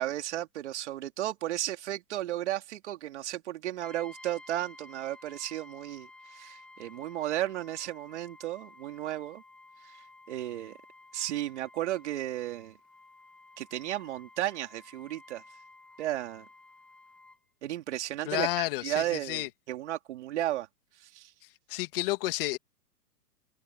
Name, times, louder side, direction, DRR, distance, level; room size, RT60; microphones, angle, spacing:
voice 1, 0.0-9.4 9.8-10.8 11.1-12.8 13.6-15.4 16.0-16.5 17.6-20.7 21.0-21.3, right 13 dB, 45° right, 3.1 m, -34 dB
Brass instrument, 3.8-17.4, left 2 dB, ahead, 1.9 m, -54 dB
voice 2, 18.3-19.5 21.7-22.6, left 18 dB, 35° left, 2.6 m, -31 dB
hypercardioid pair, 165°, 49 cm